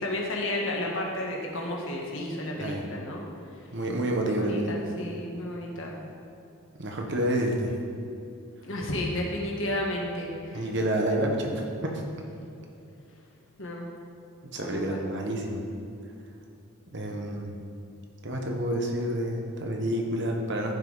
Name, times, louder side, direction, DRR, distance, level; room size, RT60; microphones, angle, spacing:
voice 1, 0.0-3.2 4.2-6.0 8.6-10.7 13.6-13.9 14.6-15.1, left 1 dB, 60° left, -1 dB, 1.5 m, -32 dB
voice 2, 3.7-4.9 6.8-7.7 10.5-12.0 14.5-15.6 16.9-17.6 18.2-20.7, right 1 dB, 55° right, 1 dB, 1.2 m, -29 dB
14.0 x 5.7 x 4.0 m, 2.7 s
head